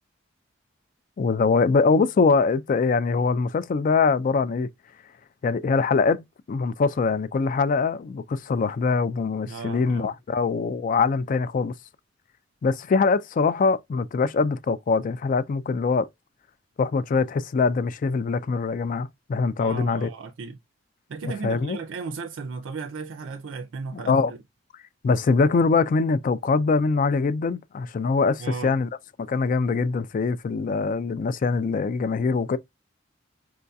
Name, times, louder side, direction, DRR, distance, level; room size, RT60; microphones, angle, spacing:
voice 1, 1.2-4.7 5.4-11.7 12.6-16.1 16.8-20.1 21.2-21.8 23.9-24.3 25.0-28.9 29.2-32.6, left 4 dB, 40° left, 0.3 m, -23 dB
voice 2, 9.5-10.2 19.6-20.6 21.1-24.4 28.4-28.8, right 4 dB, 70° right, 0.4 m, -35 dB
4.7 x 2.6 x 2.2 m
head